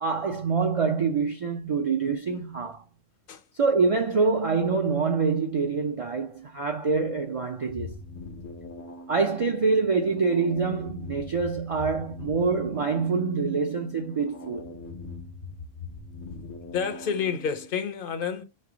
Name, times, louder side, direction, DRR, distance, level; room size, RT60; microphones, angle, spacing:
voice 1, 0.0-2.8 3.5-8.0 9.1-14.7, right 4 dB, 55° right, 0.3 m, -25 dB
sound 1, 7.7-17.7, left 3 dB, 85° left, 1.2 m, -42 dB
voice 2, 16.7-18.4, left 7 dB, 60° left, 0.7 m, -29 dB
3.3 x 3.2 x 4.9 m
omnidirectional pair, 1.1 m